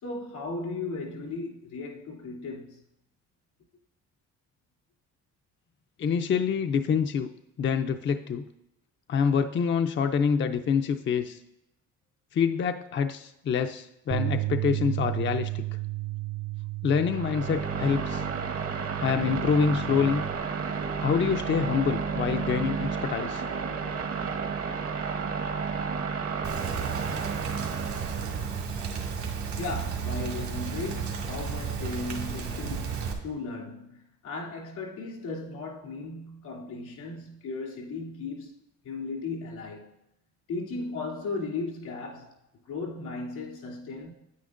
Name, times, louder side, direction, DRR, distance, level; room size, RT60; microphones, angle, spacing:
voice 1, 0.0-2.8 29.6-39.9 40.5-42.3 42.7-44.1, left 3 dB, 85° left, 2.8 m, -36 dB
voice 2, 6.0-7.3 7.6-8.5 9.1-11.4 12.3-15.6 16.8-18.2 19.0-20.3 21.0-23.4, left 6 dB, 40° left, 0.5 m, -26 dB
Bass guitar, 14.1-20.4, right 17 dB, 25° right, 0.6 m, -33 dB
sound 1, 17.0-28.5, right 5 dB, 50° right, 1.0 m, -32 dB
Rain, 26.4-33.1, right 6 dB, 70° right, 1.9 m, -33 dB
9.4 x 9.1 x 2.5 m
cardioid pair, 90°, 30 cm